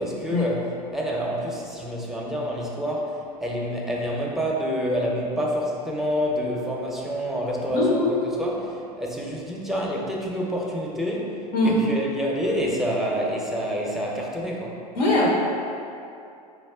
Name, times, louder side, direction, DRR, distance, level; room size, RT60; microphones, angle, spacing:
voice 1, 0.0-14.8, equal, ahead, -3 dB, 0.6 m, -28 dB
voice 2, 7.7-8.2 11.5-11.8 15.0-15.3, left 2 dB, 70° left, -4 dB, 0.7 m, -21 dB
4.7 x 2.1 x 3.5 m, 2.6 s
hypercardioid pair, 85°, 21 cm